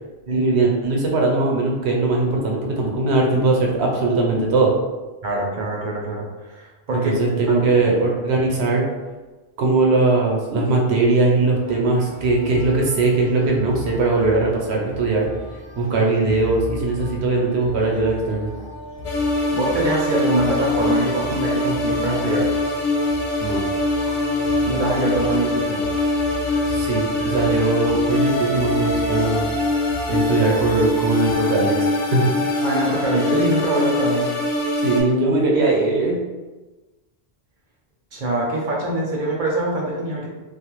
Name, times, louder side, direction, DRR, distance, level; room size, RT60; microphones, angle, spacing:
voice 1, 0.3-4.7 6.9-8.8 9.6-15.3 15.8-18.5 23.4-23.6 26.7-29.4 30.1-32.3 34.8-36.2, right 3 dB, 85° right, -1 dB, 0.9 m, -20 dB
voice 2, 5.2-7.1 7.5-7.9 19.5-22.5 24.7-25.9 32.6-34.3 38.1-40.3, right 2 dB, 60° right, -3 dB, 0.6 m, -24 dB
sound 1, 11.6-31.4, left 3 dB, 40° left, 0.6 m, -36 dB
sound 2, 19.0-35.0, left 2 dB, 90° left, 0.9 m, -23 dB
2.4 x 2.0 x 2.9 m, 1.2 s
omnidirectional pair, 1.1 m